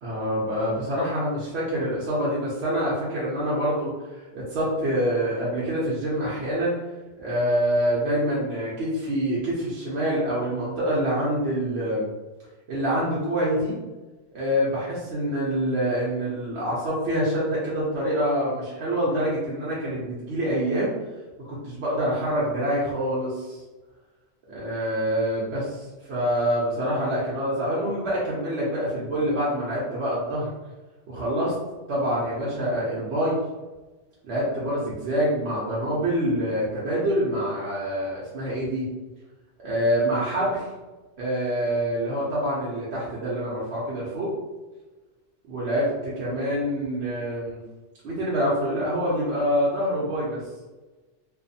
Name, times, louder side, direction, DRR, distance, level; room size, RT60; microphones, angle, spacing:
voice 1, 0.0-3.9 4.3-6.8 7.2-12.1 12.7-13.8 14.3-20.9 21.4-23.6 24.5-25.6 26.1-30.5 31.1-31.5 31.9-33.4 34.2-38.9 39.6-40.6 41.2-44.3 45.4-47.6 48.0-50.4, equal, 65° right, -7 dB, 0.9 m, -26 dB
2.5 x 2.4 x 2.6 m, 1.2 s
omnidirectional pair, 1.2 m